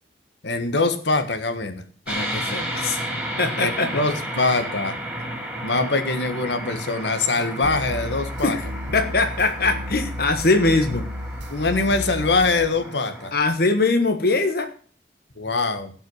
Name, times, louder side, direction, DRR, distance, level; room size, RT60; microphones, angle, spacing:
voice 1, 0.4-1.8 3.6-5.0 5.6-8.6 11.5-13.3 15.4-15.9, left 3 dB, 80° left, 8 dB, 1.5 m, -23 dB
voice 2, 2.1-3.0 3.4-3.9 8.4-11.0 13.3-14.7, left 3 dB, 60° left, 6 dB, 1.3 m, -22 dB
sound 1, 2.1-13.3, right 1 dB, 5° right, 3.8 m, -33 dB
sound 2, 7.6-12.7, left 1 dB, 90° right, 1.6 m, -33 dB
17.0 x 5.8 x 6.3 m, 0.43 s
head